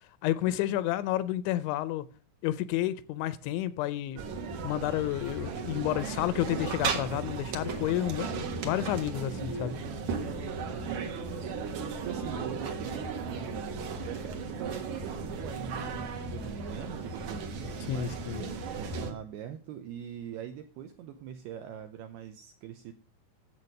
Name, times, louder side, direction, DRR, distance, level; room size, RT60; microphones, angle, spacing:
voice 1, 0.2-2.0 2.4-4.2 4.6-9.7 17.9-18.5, left 13 dB, 80° left, 2.8 m, -30 dB
sound 1, 4.2-19.1, right 4 dB, 65° right, 1.8 m, -36 dB
voice 2, 10.7-11.2 12.0-18.2 18.7-22.9, right 9 dB, 85° right, 2.3 m, -42 dB
11.0 x 7.6 x 6.5 m
omnidirectional pair, 5.6 m